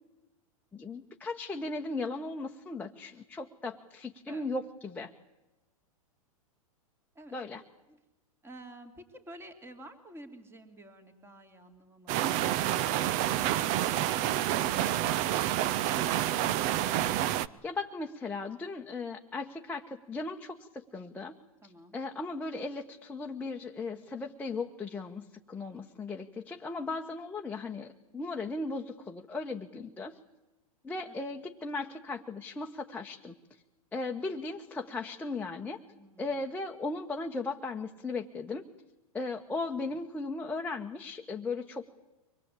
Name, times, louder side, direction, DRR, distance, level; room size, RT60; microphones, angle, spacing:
voice 1, 0.7-5.1 7.3-7.6 17.6-21.3 21.9-30.2 30.8-33.3 33.9-35.8 36.2-38.6 39.1-41.9, left 3 dB, 10° left, 1 dB, 1.2 m, -37 dB
voice 2, 8.4-15.7 21.6-22.0 31.1-31.2 35.9-36.5, right 1 dB, 15° right, 6 dB, 2.9 m, -51 dB
sound 1, 12.1-17.5, right 13 dB, 40° right, 0.8 m, -28 dB
24.5 x 19.0 x 8.7 m, 1.0 s
hypercardioid pair, 115°, 19 cm